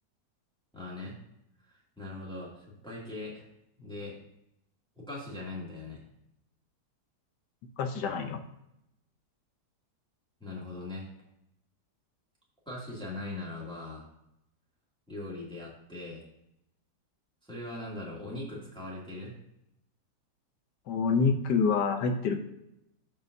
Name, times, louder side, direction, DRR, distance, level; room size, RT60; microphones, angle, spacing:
voice 1, 0.7-1.1 1.6-3.4 3.8-4.2 5.0-6.0 10.4-11.1 12.7-14.1 15.1-16.3 17.5-19.3, left 2 dB, 5° left, -5 dB, 2.4 m, -40 dB
voice 2, 7.8-8.4 20.9-22.4, left 5 dB, 75° left, 7 dB, 1.4 m, -27 dB
14.0 x 5.5 x 2.7 m, 0.82 s
omnidirectional pair, 1.8 m